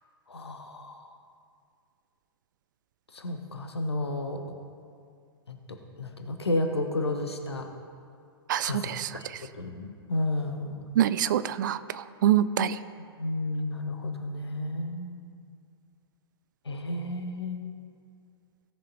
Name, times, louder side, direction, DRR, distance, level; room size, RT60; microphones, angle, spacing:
voice 1, 0.3-1.0 3.1-4.4 5.5-5.6 6.0-7.7 8.6-9.3 9.6-10.8 13.2-15.2 16.7-17.6, left 2 dB, 75° left, 5 dB, 1.2 m, -32 dB
voice 2, 8.5-9.1 11.0-12.8, right 10 dB, 50° right, 15 dB, 0.4 m, -25 dB
17.0 x 6.6 x 4.1 m, 2.3 s
figure-of-eight pair, 110°, 14 cm